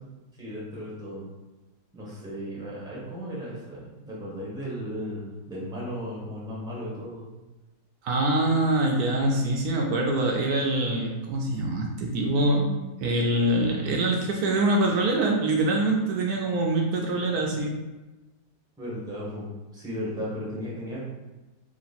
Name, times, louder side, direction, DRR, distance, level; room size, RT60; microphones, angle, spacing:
voice 1, 0.4-1.3 1.9-7.2 18.8-19.5 19.7-21.0, equal, 5° right, -7 dB, 0.9 m, -35 dB
voice 2, 8.0-17.8, right 2 dB, 75° right, 0 dB, 1.0 m, -24 dB
3.0 x 3.0 x 4.1 m, 1.1 s
omnidirectional pair, 1.7 m